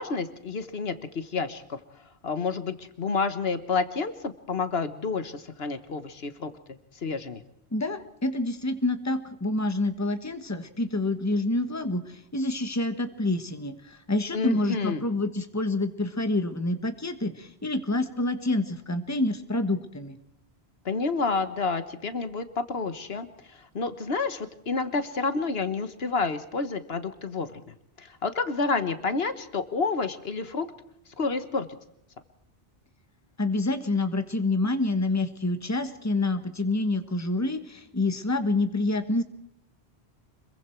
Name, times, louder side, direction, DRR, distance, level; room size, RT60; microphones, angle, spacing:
voice 1, 0.0-1.8 2.2-6.5 6.9-7.4 14.3-15.0 20.8-27.6 28.0-30.7 31.2-31.6, left 4 dB, 70° left, 11 dB, 1.5 m, -29 dB
voice 2, 7.7-20.2 33.4-39.2, left 2 dB, 15° left, 8 dB, 1.3 m, -27 dB
26.0 x 22.5 x 4.6 m, 0.76 s
omnidirectional pair, 1.1 m